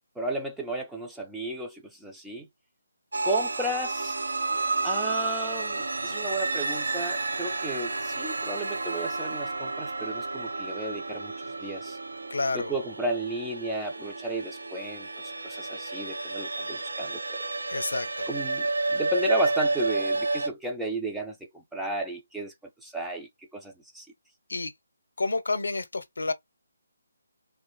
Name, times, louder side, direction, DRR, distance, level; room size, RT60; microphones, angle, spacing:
voice 1, 0.2-2.5 3.2-4.2 4.8-11.3 11.6-12.0 12.5-17.5 18.3-22.5 22.8-24.1, right 2 dB, 5° right, 0.3 m, -33 dB
sound 1, 3.1-20.5, right 3 dB, 85° right, 0.5 m, -31 dB
voice 2, 12.3-12.7 17.7-18.3 24.5-24.7 25.2-26.3, left 3 dB, 85° left, 0.5 m, -29 dB
2.4 x 2.1 x 3.0 m
hypercardioid pair, 165°, 0 cm